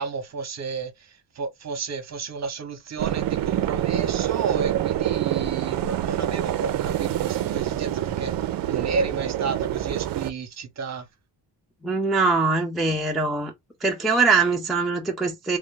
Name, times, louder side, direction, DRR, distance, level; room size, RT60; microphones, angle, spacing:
voice 1, 0.0-8.3 8.7-11.1, right 5 dB, 40° right, 0.8 m, -32 dB
sound 1, 3.0-10.3, right 12 dB, 55° right, 0.5 m, -26 dB
voice 2, 11.8-13.5 13.8-15.6, right 4 dB, ahead, 0.4 m, -22 dB
3.1 x 2.5 x 3.6 m
wide cardioid pair, 165°, 41 cm